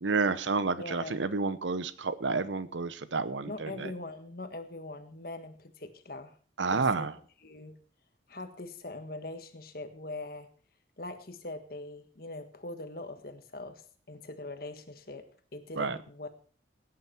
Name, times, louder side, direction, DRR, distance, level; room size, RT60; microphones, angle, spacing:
voice 1, 0.0-3.9 6.6-7.1 15.8-16.0, right 4 dB, 90° right, 14 dB, 0.9 m, -30 dB
voice 2, 0.8-1.2 3.5-6.4 6.7-7.1 7.4-7.8 8.3-10.5 11.0-13.8 14.1-15.3 15.5-16.3, left 2 dB, 55° left, 8 dB, 1.6 m, -42 dB
17.0 x 9.7 x 4.4 m, 0.43 s
head